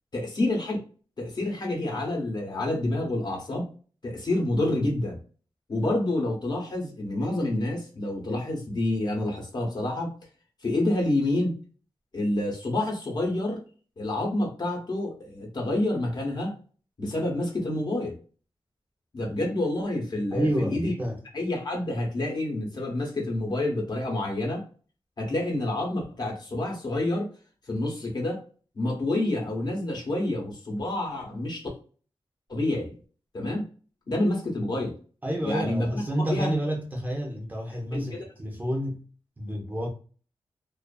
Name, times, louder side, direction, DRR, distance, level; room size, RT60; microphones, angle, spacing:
voice 1, 0.1-0.8 1.2-3.7 4.0-5.2 5.7-10.1 10.6-11.6 12.1-13.6 14.0-16.6 17.0-18.2 19.1-20.9 21.3-24.6 25.2-27.3 27.7-28.4 28.8-31.7 32.5-32.9 33.3-33.7 34.1-34.9 35.4-36.6 37.9-38.2, left 1 dB, 45° left, 0.8 m, -28 dB
voice 2, 20.3-21.2 35.2-39.0 39.4-39.9, equal, 15° right, 0.6 m, -29 dB
2.5 x 2.4 x 2.3 m
wide cardioid pair, 130°, 10 cm